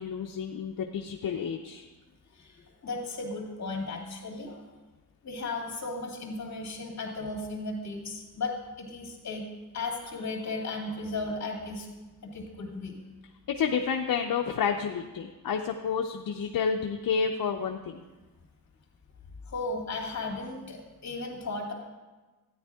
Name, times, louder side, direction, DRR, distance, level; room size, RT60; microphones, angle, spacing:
voice 1, 0.0-1.9 13.5-18.0, left 6 dB, 65° left, 3 dB, 0.7 m, -30 dB
voice 2, 2.3-4.7 5.2-9.5 9.7-11.9 12.2-13.0 19.5-21.7, left 3 dB, 45° left, 0 dB, 2.5 m, -35 dB
13.0 x 9.8 x 3.6 m, 1.2 s
cardioid pair, 95°, 37 cm